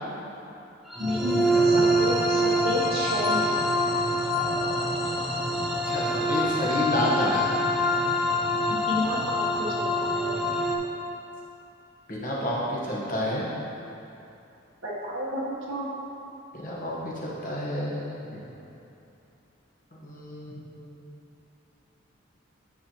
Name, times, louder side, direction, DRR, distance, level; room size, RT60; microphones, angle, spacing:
sound 1, 0.9-10.8, equal, ahead, 0.5 m, -25 dB
voice 1, 1.0-3.5 8.7-9.4 9.7-10.3 14.8-15.9, equal, 80° right, -7 dB, 1.3 m, -31 dB
voice 2, 5.9-7.4 12.1-13.5 16.5-18.6 19.9-21.0, left 1 dB, 40° left, -5 dB, 1.2 m, -30 dB
9.4 x 5.7 x 3.0 m, 2.8 s
head